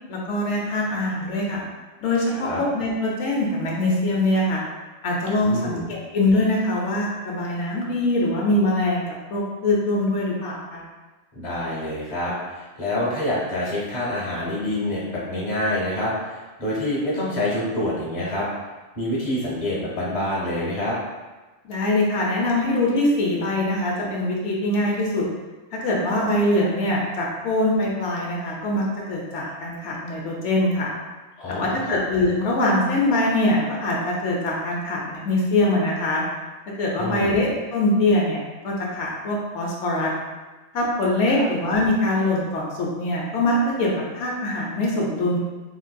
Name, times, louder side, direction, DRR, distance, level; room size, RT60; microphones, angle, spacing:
voice 1, 0.1-1.6 2.0-4.6 5.0-10.8 21.7-25.2 25.7-30.9 31.5-36.2 36.8-40.1 40.7-45.4, left 1 dB, 85° left, -3 dB, 1.0 m, -23 dB
voice 2, 2.3-2.6 5.4-5.8 11.3-18.5 19.0-21.0 31.4-32.0 37.0-37.4 41.3-41.5, left 1 dB, 40° left, -6 dB, 0.9 m, -27 dB
3.7 x 2.5 x 2.2 m, 1.2 s
omnidirectional pair, 1.2 m